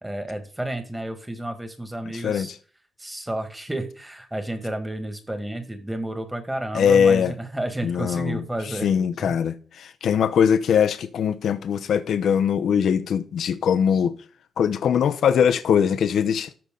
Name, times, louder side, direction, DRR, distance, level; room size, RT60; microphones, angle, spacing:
voice 1, 0.0-2.5 3.0-8.9 9.2-9.3, right 1 dB, 10° right, 1.9 m, -31 dB
voice 2, 2.1-2.6 6.7-7.3 7.8-14.1 14.6-16.5, left 7 dB, 70° left, 0.7 m, -21 dB
13.5 x 5.7 x 3.8 m
cardioid pair, 110°, 0 cm